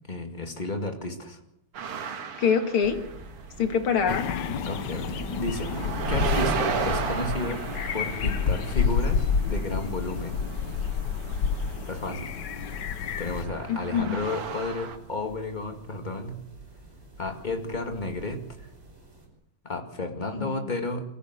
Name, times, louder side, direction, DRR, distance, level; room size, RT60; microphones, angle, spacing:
voice 1, 0.1-1.4 4.7-5.7 6.1-7.6 7.9-10.4 11.9-12.3 13.2-16.4 17.2-18.7 19.6-21.0, left 2 dB, 20° left, 5 dB, 2.1 m, -32 dB
sound 1, 1.7-3.6 3.8-15.0, right 6 dB, 90° right, 2.6 m, -35 dB
voice 2, 2.4-3.0 3.6-4.3 13.7-14.2 20.4-20.5, left 6 dB, 75° left, 7 dB, 2.7 m, -24 dB
sound 2, 2.8-19.3, right 3 dB, 60° right, 6.3 m, -46 dB
sound 3, 4.1-13.4, left 6 dB, 60° left, 1.4 m, -29 dB
23.0 x 14.5 x 8.1 m, 0.79 s
omnidirectional pair, 2.4 m